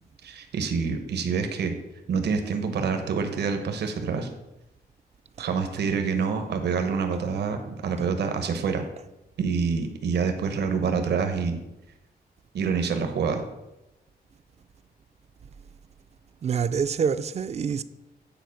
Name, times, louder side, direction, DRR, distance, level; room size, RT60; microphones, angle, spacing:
voice 1, 0.2-1.8 2.1-4.3 5.4-8.8 9.4-11.6 12.5-13.4, right 5 dB, 85° right, 1.0 m, -27 dB
voice 2, 16.4-17.8, right 6 dB, 40° right, 0.4 m, -26 dB
9.2 x 4.4 x 7.0 m
wide cardioid pair, 150°, 17 cm